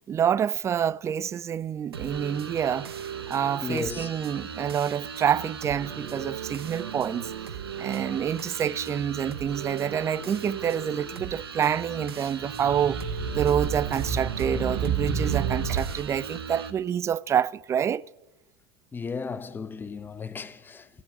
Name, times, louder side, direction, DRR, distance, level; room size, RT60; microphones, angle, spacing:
voice 1, 0.1-2.9 3.3-7.3 7.8-18.0, right 9 dB, 20° right, 0.4 m, -27 dB
sound 1, 1.9-16.7, right 7 dB, 85° right, 1.2 m, -37 dB
voice 2, 3.6-4.2 18.9-20.9, left 5 dB, 15° left, 0.9 m, -35 dB
sound 2, 12.4-16.1, right 6 dB, 60° right, 2.3 m, -29 dB
16.0 x 7.3 x 9.7 m
hypercardioid pair, 90°, 13 cm